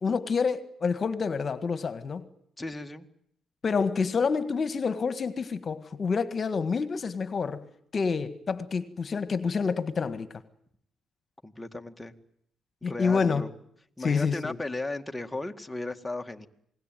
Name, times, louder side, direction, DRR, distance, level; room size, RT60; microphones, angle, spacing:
voice 1, 0.0-2.2 3.6-7.6 7.9-10.3 12.8-13.4 14.0-14.6, left 5 dB, 40° left, 1.7 m, -28 dB
voice 2, 2.6-3.1 11.4-12.1 12.8-13.5 14.0-16.5, left 2 dB, 10° left, 2.0 m, -35 dB
28.0 x 20.0 x 9.2 m
cardioid pair, 90°, 0 cm